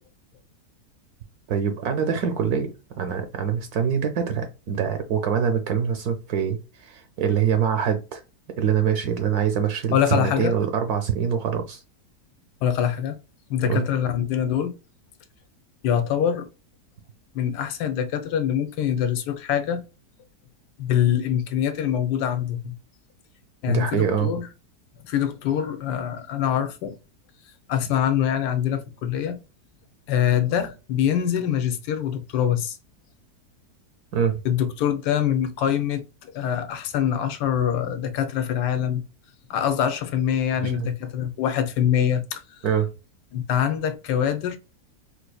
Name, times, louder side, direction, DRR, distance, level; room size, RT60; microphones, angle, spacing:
voice 1, 1.5-2.7 3.0-8.2 8.6-11.8 13.6-13.9 23.7-24.3 34.1-34.4 40.6-40.9 42.6-42.9, right 7 dB, 70° right, 1.1 m, -24 dB
voice 2, 9.9-10.6 12.6-13.2 13.5-14.7 15.8-16.5 17.3-19.8 20.8-22.8 23.6-24.5 25.0-26.9 27.7-29.4 30.1-32.8 34.4-39.0 39.5-42.6 43.3-44.6, left 9 dB, 80° left, 1.2 m, -24 dB
4.1 x 2.6 x 2.2 m
omnidirectional pair, 1.8 m